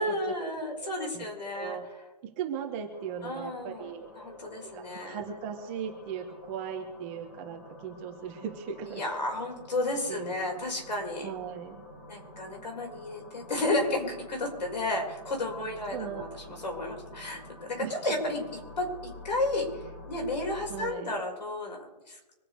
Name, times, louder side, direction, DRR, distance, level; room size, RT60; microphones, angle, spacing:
voice 1, 0.0-1.8 3.2-5.2 8.9-11.3 12.1-22.4, left 2 dB, 90° left, 1 dB, 5.4 m, -32 dB
voice 2, 1.5-1.9 2.2-4.1 4.7-9.0 10.1-10.6 11.2-11.8 15.9-16.2 16.5-16.6 17.8-17.9 20.7-21.1, right 8 dB, 20° right, 4 dB, 1.5 m, -38 dB
sound 1, 2.9-20.9, left 2 dB, 35° left, 4.4 m, -48 dB
25.0 x 8.8 x 4.8 m, 1.1 s
hypercardioid pair, 170°, 21 cm